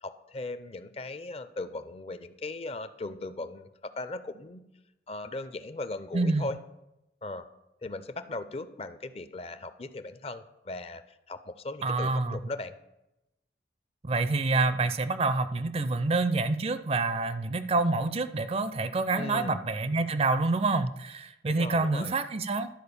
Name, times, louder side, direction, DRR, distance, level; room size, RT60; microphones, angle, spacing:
voice 1, 0.0-4.7 5.1-6.6 7.2-7.5 7.8-11.0 11.3-12.8 19.2-19.6 21.5-22.1, left 2 dB, 35° left, 12 dB, 0.5 m, -38 dB
voice 2, 6.1-6.5 11.8-12.4 14.0-22.7, right 3 dB, 35° right, 12 dB, 0.4 m, -27 dB
11.5 x 4.6 x 6.9 m, 0.92 s
head